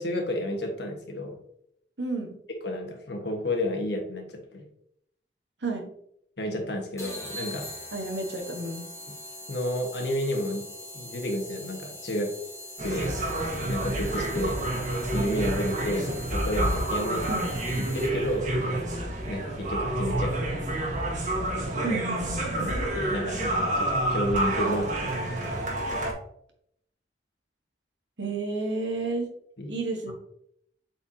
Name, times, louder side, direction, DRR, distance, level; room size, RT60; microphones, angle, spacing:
voice 1, 0.0-1.4 2.6-4.3 4.5-4.6 6.4-7.7 9.5-10.7 10.9-12.3 12.8-13.2 13.7-14.6 15.1-17.2 17.8-18.5 19.3-20.6 22.6-23.5 23.7-25.7 29.6-29.7, left 1 dB, 65° left, 2 dB, 1.5 m, -31 dB
voice 2, 2.0-2.4 5.6-5.9 7.9-8.9 17.3-17.5 21.8-22.7 28.2-29.3 29.7-30.1, right 2 dB, 75° right, 3 dB, 1.5 m, -31 dB
sound 1, 7.0-18.4, left 1 dB, 15° left, 1.7 m, -42 dB
sound 2, 12.8-26.1, right 1 dB, 45° right, 1.7 m, -29 dB
8.0 x 4.4 x 2.9 m, 0.70 s
head